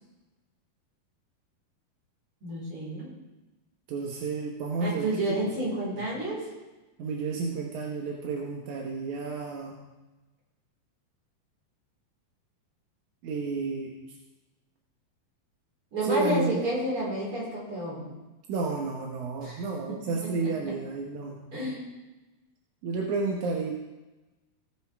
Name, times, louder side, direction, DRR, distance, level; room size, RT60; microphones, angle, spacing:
voice 1, 2.4-3.1 4.8-6.5 15.9-18.1 19.4-19.6 20.4-20.5 21.5-21.9, right 1 dB, 35° right, -6 dB, 5.0 m, -30 dB
voice 2, 3.9-5.4 5.9-6.1 7.0-9.8 13.2-13.9 16.0-16.6 18.5-21.4 22.8-23.7, right 3 dB, 70° right, 0 dB, 2.0 m, -31 dB
17.5 x 8.8 x 3.4 m, 1.1 s
omnidirectional pair, 4.5 m